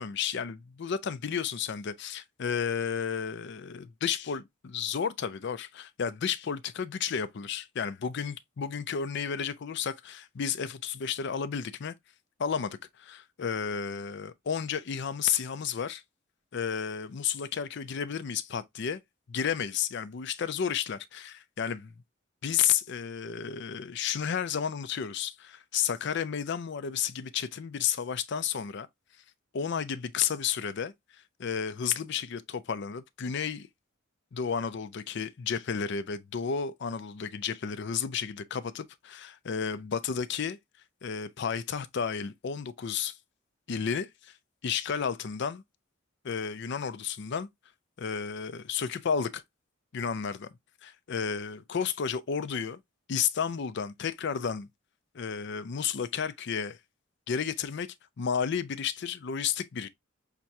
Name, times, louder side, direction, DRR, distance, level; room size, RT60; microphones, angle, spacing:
voice 1, 0.0-11.9 12.4-16.0 16.5-19.0 19.3-21.9 22.4-28.9 29.5-30.9 31.4-33.7 34.3-40.6 41.0-43.2 43.7-44.3 44.6-45.6 46.2-47.5 48.0-49.4 49.9-50.5 50.8-52.8 53.1-54.7 55.1-56.8 57.3-59.9, left 7 dB, 60° left, 0.4 m, -32 dB
5.8 x 2.2 x 2.6 m
head